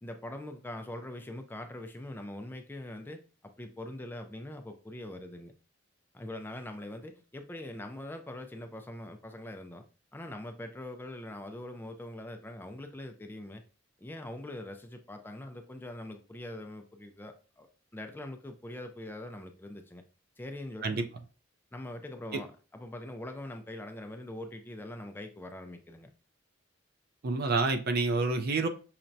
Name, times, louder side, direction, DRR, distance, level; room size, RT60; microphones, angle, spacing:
voice 1, 0.0-5.5 6.1-9.8 10.1-13.6 14.0-17.7 17.9-20.0 20.4-21.0 21.7-26.1, left 1 dB, 10° left, 0.4 m, -43 dB
voice 2, 27.2-28.7, right 3 dB, 55° right, 0.5 m, -28 dB
5.7 x 2.1 x 2.6 m
head